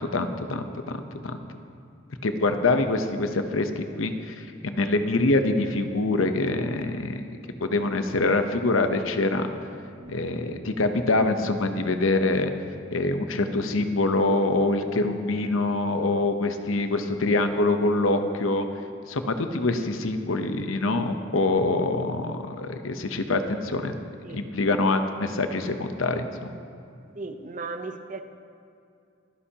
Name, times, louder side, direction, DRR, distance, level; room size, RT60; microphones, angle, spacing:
voice 1, 0.0-1.4 2.2-7.3 7.6-9.5 10.1-12.5 12.9-18.7 19.1-23.9 24.3-26.3, left 2 dB, 90° left, 7 dB, 0.9 m, -25 dB
sound 1, 9.9-10.6, right 2 dB, 20° right, 1.3 m, -47 dB
voice 2, 27.1-28.2, right 3 dB, 40° right, 7 dB, 0.8 m, -36 dB
24.5 x 10.0 x 2.9 m, 2.5 s
head